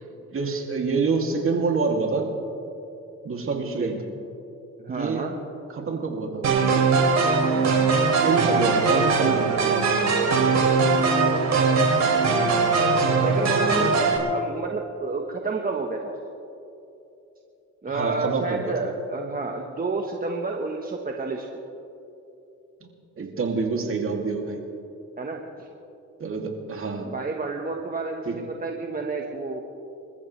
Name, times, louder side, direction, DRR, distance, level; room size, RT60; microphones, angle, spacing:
voice 1, 0.3-2.3 3.2-4.0 4.9-5.3 5.7-6.9 8.2-9.9 17.9-18.9 23.2-24.6 26.2-27.1 28.2-28.4, right 4 dB, 45° right, 1 dB, 2.8 m, -27 dB
voice 2, 4.9-5.3 13.2-16.2 17.8-21.5 25.2-25.4 27.0-29.6, right 3 dB, 30° right, 1 dB, 1.4 m, -30 dB
sound 1, 6.4-14.2, right 4 dB, 65° right, 3.1 m, -21 dB
29.0 x 14.0 x 3.4 m, 2.9 s
cardioid pair, 90°, 30 cm